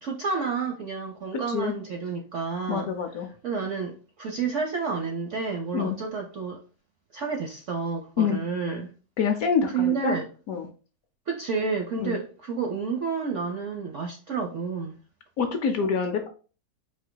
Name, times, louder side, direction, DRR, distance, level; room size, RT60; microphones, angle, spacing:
voice 1, 0.0-2.9 3.4-6.6 7.1-8.9 9.7-10.3 11.3-15.0, right 5 dB, 65° right, 0.7 m, -30 dB
voice 2, 1.3-1.7 2.7-3.3 5.7-6.0 8.2-8.4 9.2-10.2 10.5-10.7 12.0-12.2 15.4-16.3, left 6 dB, 70° left, 0.9 m, -26 dB
4.5 x 2.7 x 3.8 m
omnidirectional pair, 1.9 m